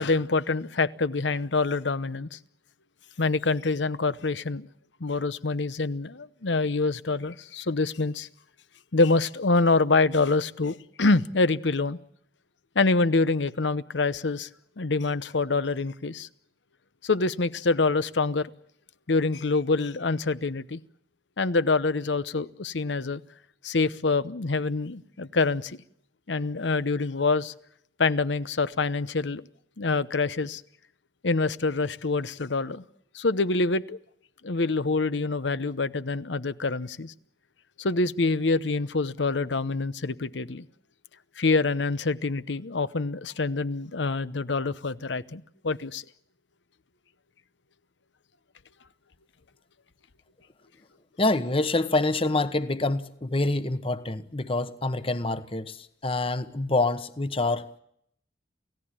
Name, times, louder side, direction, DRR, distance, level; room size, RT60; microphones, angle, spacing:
voice 1, 0.0-2.4 3.2-4.7 5.0-8.3 8.9-12.0 12.7-14.5 14.8-16.3 17.0-18.5 19.1-20.8 21.4-23.2 23.6-25.8 26.3-27.5 28.0-29.4 29.8-30.6 31.2-32.8 33.1-34.0 34.4-37.1 37.8-40.7 41.4-46.0, left 3 dB, 85° left, 0.9 m, -26 dB
voice 2, 51.2-55.8 56.0-57.7, left 2 dB, 30° left, 1.1 m, -26 dB
29.0 x 16.5 x 8.9 m
head